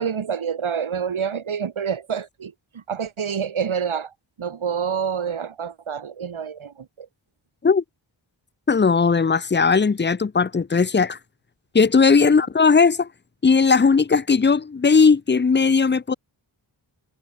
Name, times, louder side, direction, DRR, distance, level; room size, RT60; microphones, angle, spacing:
voice 1, 0.0-7.1, right 7 dB, 90° right, 2.9 m, -28 dB
voice 2, 8.7-11.2 11.7-13.1 13.4-16.1, left 5 dB, 25° left, 0.6 m, -17 dB
wide cardioid pair, 115°, 47 cm